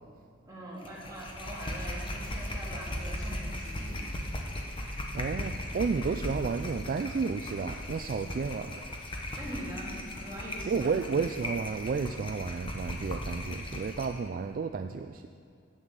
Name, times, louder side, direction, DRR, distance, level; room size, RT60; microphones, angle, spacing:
voice 1, 0.4-4.0 9.4-11.0, right 1 dB, 20° right, -6 dB, 2.5 m, -42 dB
sound 1, 0.8-14.2, left 1 dB, 25° left, 1.0 m, -37 dB
voice 2, 5.1-8.9 10.6-15.2, right 5 dB, 45° right, 7 dB, 0.3 m, -32 dB
8.9 x 7.3 x 6.7 m, 2.4 s
head